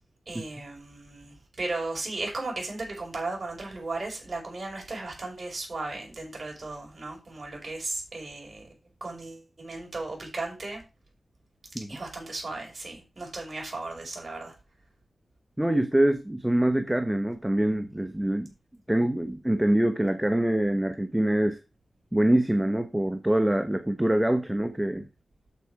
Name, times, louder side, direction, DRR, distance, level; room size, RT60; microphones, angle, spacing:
voice 1, 0.3-8.6 9.0-10.8 11.9-14.5, right 2 dB, 40° right, 5.2 m, -36 dB
voice 2, 15.6-18.5 18.9-21.6 22.1-25.1, right 1 dB, 5° right, 0.9 m, -24 dB
8.3 x 7.0 x 4.8 m
wide cardioid pair, 125°, 0 cm